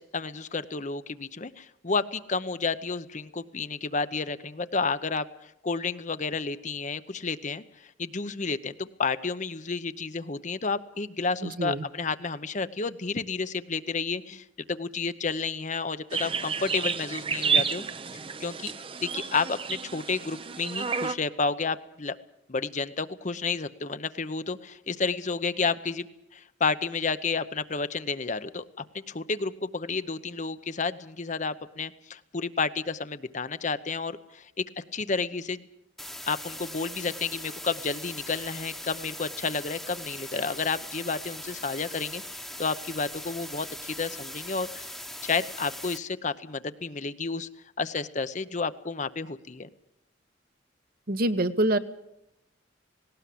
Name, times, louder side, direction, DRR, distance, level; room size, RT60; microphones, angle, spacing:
voice 1, 0.0-17.8 18.4-18.7 19.0-22.2 22.5-26.1 26.3-28.7 28.9-35.6 36.3-44.9 45.2-47.5 47.8-49.7, left 4 dB, 40° left, 12 dB, 0.8 m, -31 dB
voice 2, 11.4-11.9 51.1-51.8, right 1 dB, 50° right, 10 dB, 1.1 m, -25 dB
sound 1, 16.1-21.1, right 6 dB, 25° right, 0.7 m, -30 dB
sound 2, 36.0-46.0, left 1 dB, ahead, 1.2 m, -40 dB
18.5 x 18.0 x 8.5 m, 0.83 s
head